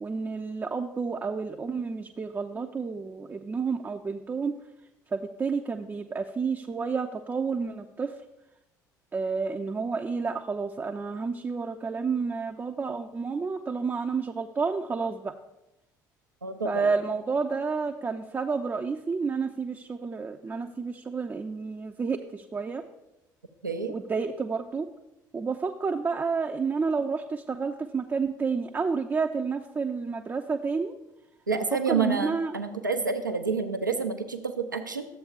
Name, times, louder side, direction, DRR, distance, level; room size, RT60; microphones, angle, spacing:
voice 1, 0.0-4.6 5.1-8.1 9.1-15.3 16.6-22.8 23.9-24.9 25.3-30.9 31.5-32.6, right 5 dB, 20° right, 4 dB, 0.4 m, -30 dB
voice 2, 16.4-16.9 23.6-23.9 31.5-35.1, right 5 dB, 90° right, 7 dB, 0.5 m, -29 dB
12.0 x 7.7 x 2.4 m, 0.93 s
figure-of-eight pair, 55°, 10 cm